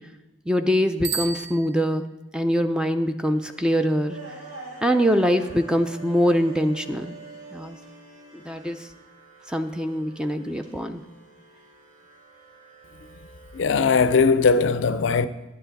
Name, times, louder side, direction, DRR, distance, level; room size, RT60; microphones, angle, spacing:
voice 1, 0.5-2.1 2.3-4.2 4.8-7.2 7.5-7.8 8.3-8.9 9.5-11.0, equal, 5° right, 0.3 m, -23 dB
Bicycle bell, 1.0-2.3, right 6 dB, 35° right, 0.8 m, -33 dB
sound 1, 3.3-13.7, right 3 dB, 90° right, 2.4 m, -46 dB
voice 2, 13.5-15.3, left 4 dB, 60° left, 0.4 m, -19 dB
10.5 x 10.0 x 4.0 m
head